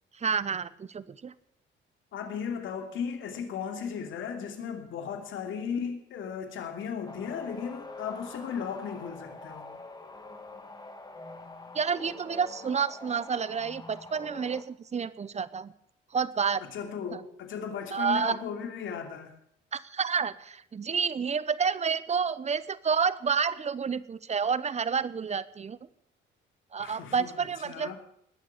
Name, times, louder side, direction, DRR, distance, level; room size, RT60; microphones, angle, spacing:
voice 1, 0.2-1.3 11.7-15.7 16.1-16.6 17.1-17.2 17.9-18.4 19.7-25.8 26.7-28.0, right 6 dB, 35° right, 17 dB, 0.9 m, -29 dB
voice 2, 2.1-9.7 16.7-19.3 26.8-28.0, left 7 dB, 75° left, 4 dB, 2.8 m, -36 dB
sound 1, 7.1-14.6, left 2 dB, 20° left, 1.9 m, -45 dB
20.0 x 7.5 x 8.2 m, 0.71 s
cardioid pair, 90°, 20 cm